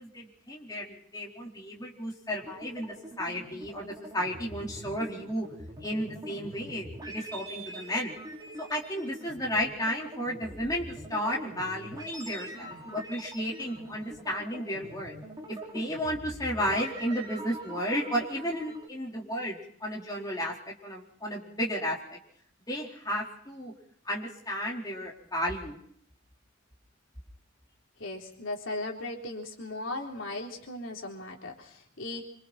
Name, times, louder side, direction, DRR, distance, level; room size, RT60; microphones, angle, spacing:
voice 1, 0.0-5.5 5.8-8.1 8.6-15.1 15.5-22.2 22.7-23.7 24.0-25.8, equal, 20° left, -2 dB, 4.2 m, -33 dB
sound 1, 2.4-18.9, right 1 dB, 20° right, 5.0 m, -44 dB
voice 2, 28.0-32.2, left 2 dB, 70° left, 0 dB, 3.8 m, -37 dB
26.5 x 26.5 x 4.4 m, 0.64 s
head